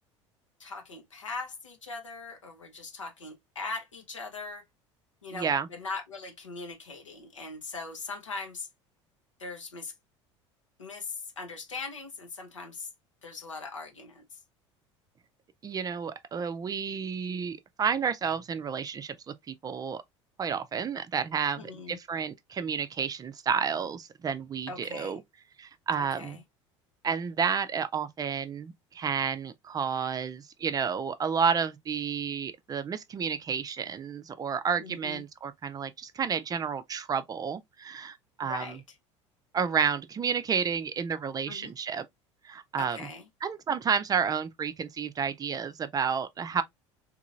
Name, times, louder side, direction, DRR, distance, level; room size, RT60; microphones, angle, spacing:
voice 1, 0.6-4.6 5.2-8.7 9.4-9.9 10.8-12.9 13.2-14.4 21.6-22.0 24.7-25.2 26.2-26.4 34.8-35.2 38.4-38.8 41.5-41.7 42.8-43.3, left 4 dB, 85° left, 0.9 m, -40 dB
voice 2, 5.3-5.7 15.6-20.0 20.4-25.2 25.6-26.4 27.0-38.8 39.5-42.1 42.4-43.1 43.4-46.6, right 6 dB, 25° right, 0.4 m, -31 dB
3.8 x 2.9 x 2.4 m
figure-of-eight pair, 70°, 16 cm